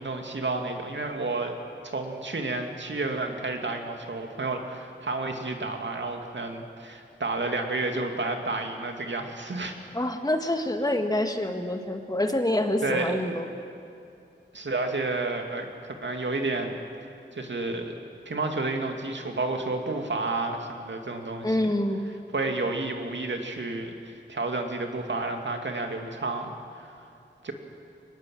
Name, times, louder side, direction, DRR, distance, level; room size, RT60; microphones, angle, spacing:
voice 1, 0.0-1.5 1.8-9.7 12.8-13.3 14.5-16.7 17.3-17.9 18.3-21.6 22.3-27.1 27.4-27.5, right 3 dB, 70° right, 4 dB, 2.5 m, -31 dB
voice 2, 9.9-13.5 21.4-22.1, left 1 dB, 20° left, 5 dB, 1.9 m, -26 dB
24.5 x 19.5 x 7.8 m, 2.6 s
wide cardioid pair, 80°, 19 cm